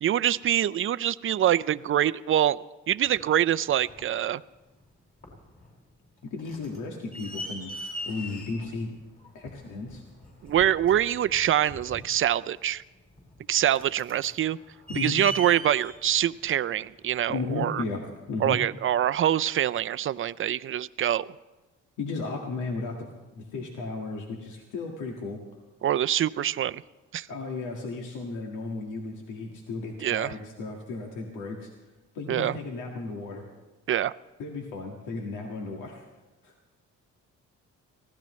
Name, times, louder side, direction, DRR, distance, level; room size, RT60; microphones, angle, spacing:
voice 1, 0.0-2.6 2.9-4.4 10.4-12.8 13.5-14.6 14.9-17.8 18.4-21.2 25.8-26.8 27.1-27.3 30.0-30.3 32.3-32.6 33.9-34.1, right 11 dB, 45° right, 17 dB, 0.5 m, -25 dB
sound 1, 3.0-4.2 4.8-4.9 5.2-5.7 6.0-17.5 18.3-18.4, equal, 30° left, 6.4 m, -41 dB
voice 2, 6.2-7.7 8.0-9.0 9.3-10.0 14.9-15.2 17.3-18.6 22.0-23.1 23.3-25.4 27.3-31.7 32.1-33.4 34.4-36.0 36.4-36.5, left 3 dB, 85° left, 0 dB, 1.9 m, -34 dB
23.5 x 16.5 x 3.2 m, 1.2 s
cardioid pair, 90°, 30 cm